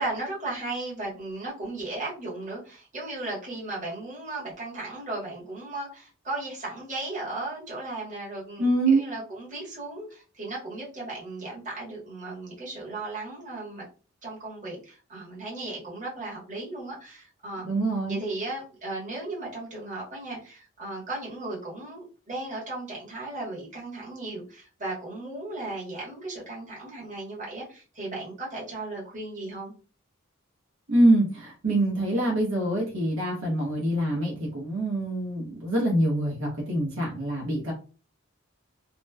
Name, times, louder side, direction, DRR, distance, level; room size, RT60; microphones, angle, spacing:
voice 1, 0.0-13.8 14.2-17.7 18.1-29.7, right 2 dB, 35° right, -6 dB, 1.2 m, -36 dB
voice 2, 8.6-9.0 17.6-18.2 30.9-37.7, right 1 dB, 70° right, -2 dB, 0.9 m, -25 dB
3.0 x 2.0 x 2.2 m, 0.36 s
head